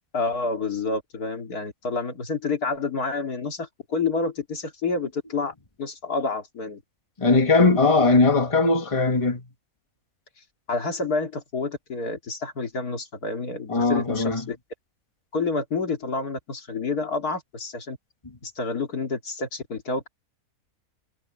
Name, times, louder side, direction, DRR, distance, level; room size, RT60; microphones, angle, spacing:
voice 1, 0.1-6.8 10.7-14.6 15.3-18.0 18.4-20.1, left 3 dB, 85° left, 3.1 m, -29 dB
voice 2, 7.2-9.5 13.7-14.4, left 3 dB, 20° left, 1.8 m, -19 dB
omnidirectional pair, 1.6 m